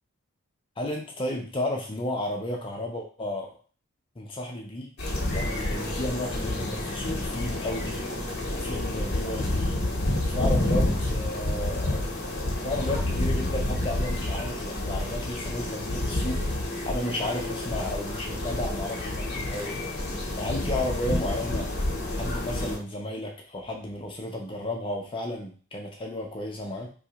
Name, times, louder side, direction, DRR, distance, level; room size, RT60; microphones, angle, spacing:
voice 1, 0.8-3.6 4.2-4.9 5.3-8.1 8.5-9.8 10.3-12.1 12.6-16.4 16.8-19.8 20.3-21.7 22.1-26.9, left 1 dB, 25° left, 0 dB, 0.5 m, -33 dB
sound 1, 5.0-22.8, left 1 dB, 55° left, 0.8 m, -29 dB
2.8 x 2.3 x 4.0 m, 0.39 s
head